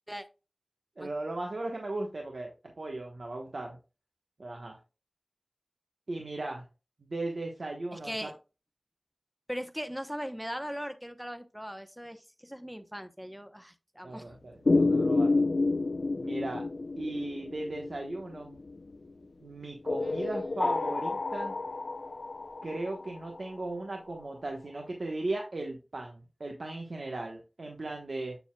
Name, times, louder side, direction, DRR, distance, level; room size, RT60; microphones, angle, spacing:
voice 1, 1.0-2.5 2.8-3.8 4.4-4.8 6.1-6.6 7.0-8.3 14.0-15.4 16.1-16.6 17.0-18.6 19.4-21.5 22.6-28.4, right 2 dB, 80° right, 2 dB, 1.1 m, -37 dB
voice 2, 7.9-8.3 9.5-14.4 20.0-20.6, equal, 5° right, 9 dB, 0.8 m, -39 dB
sound 1, 14.7-18.9 19.9-23.7, left 3 dB, 85° left, 0.5 m, -29 dB
7.9 x 7.0 x 2.2 m, 0.30 s
wide cardioid pair, 65°, 0 cm